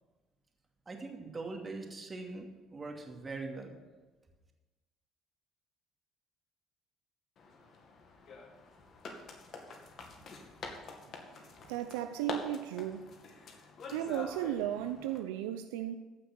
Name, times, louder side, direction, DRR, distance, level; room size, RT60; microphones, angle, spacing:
voice 1, 0.9-3.8, right 3 dB, 30° right, 2 dB, 2.6 m, -42 dB
sound 1, 7.4-15.2, left 4 dB, 55° left, 2.1 m, -46 dB
voice 2, 11.6-13.1 13.9-16.0, right 12 dB, 90° right, 8 dB, 0.5 m, -35 dB
15.0 x 6.3 x 6.1 m, 1.2 s
supercardioid pair, 70°, 0 cm